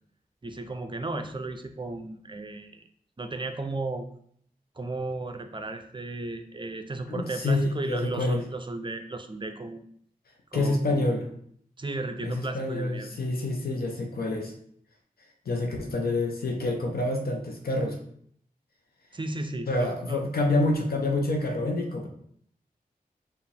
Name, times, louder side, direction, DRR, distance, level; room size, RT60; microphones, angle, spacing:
voice 1, 0.4-2.8 3.2-4.0 4.8-9.8 10.5-11.1 11.8-13.1 19.1-20.3, right 2 dB, 30° right, 7 dB, 0.5 m, -34 dB
voice 2, 7.1-8.4 10.5-11.3 12.2-14.5 15.5-18.0 19.7-22.1, left 2 dB, 80° left, 2 dB, 0.8 m, -27 dB
4.9 x 2.6 x 3.3 m, 0.64 s
cardioid pair, 50°, 15 cm